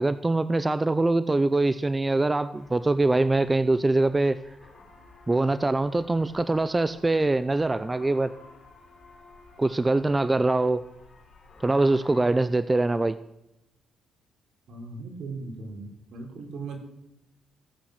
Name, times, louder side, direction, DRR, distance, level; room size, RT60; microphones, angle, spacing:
voice 1, 0.0-4.4 5.3-8.3 9.6-10.8 11.6-13.2, right 2 dB, 20° right, 14 dB, 0.5 m, -23 dB
sound 1, 2.5-12.3, left 3 dB, 45° left, 5.0 m, -53 dB
voice 2, 14.7-16.8, right 3 dB, 70° right, 2 dB, 3.7 m, -38 dB
16.5 x 8.5 x 6.5 m, 0.87 s
cardioid pair, 90°, 0 cm